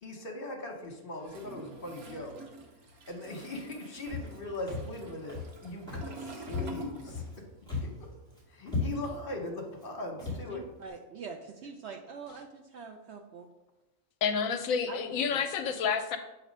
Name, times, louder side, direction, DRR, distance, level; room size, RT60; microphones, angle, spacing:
voice 1, 0.0-2.4 3.1-7.2 7.8-8.1 8.5-10.6, left 2 dB, 45° left, 1 dB, 1.1 m, -40 dB
Toilet flush, 1.2-7.6 7.9-9.5, right 1 dB, 85° right, 1.3 m, -47 dB
Walk footsteps, 4.1-4.4 4.7-5.0 5.3-5.6 5.9-6.2 6.5-7.4 7.7-8.0 8.3-8.4 8.7-9.2 9.7-9.9 10.2-10.5, left 4 dB, 5° left, 2.3 m, -36 dB
voice 2, 10.3-13.5 14.9-15.4, right 5 dB, 65° right, 4 dB, 0.7 m, -45 dB
voice 3, 14.2-16.2, left 6 dB, 75° left, 8 dB, 1.0 m, -29 dB
7.3 x 3.0 x 5.2 m, 1.1 s
omnidirectional pair, 1.5 m